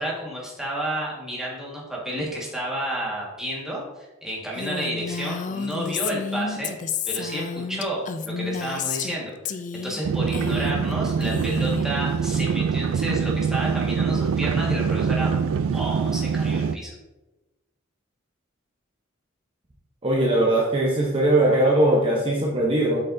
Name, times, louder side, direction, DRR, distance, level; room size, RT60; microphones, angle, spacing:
voice 1, 0.0-6.7 7.1-9.6 9.8-15.3 15.7-16.9, right 1 dB, 5° right, -5 dB, 1.6 m, -31 dB
Female speech woman speaking, 4.6-9.2 9.5-10.0 10.3-10.9 11.2-11.9, left 6 dB, 40° left, 0.4 m, -31 dB
sound 1, 10.0-16.8, right 6 dB, 75° right, 0.3 m, -24 dB
voice 2, 20.0-23.0, right 1 dB, 25° right, -3 dB, 0.8 m, -20 dB
7.9 x 5.5 x 2.6 m, 1.1 s
head